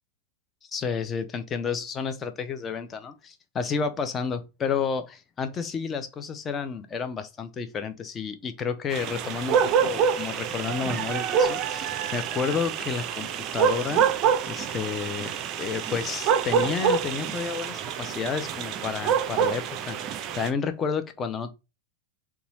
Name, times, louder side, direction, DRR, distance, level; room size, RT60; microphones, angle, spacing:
voice 1, 0.7-14.1 14.5-21.5, left 6 dB, 25° left, 0.5 m, -31 dB
sound 1, 8.9-20.5, right 7 dB, 35° right, 0.4 m, -26 dB
3.9 x 2.3 x 2.9 m
figure-of-eight pair, 90°, 0 cm